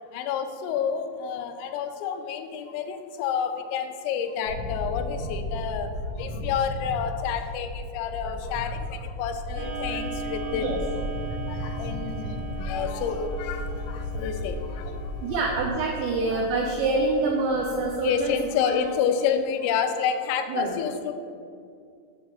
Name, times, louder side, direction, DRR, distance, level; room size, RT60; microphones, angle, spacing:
voice 1, 0.1-5.9 6.2-10.7 11.5-15.1 16.3-16.5 18.0-21.1, left 7 dB, 90° left, 7 dB, 3.3 m, -29 dB
sound 1, 4.5-15.7, left 1 dB, 45° right, 1.7 m, -34 dB
Clock, 9.5-18.5, right 3 dB, 65° right, 1.3 m, -39 dB
voice 2, 15.2-18.4 18.6-18.9 20.5-20.8, right 3 dB, 85° right, 0 dB, 2.5 m, -26 dB
8.4 x 3.9 x 6.7 m, 2.3 s
omnidirectional pair, 5.8 m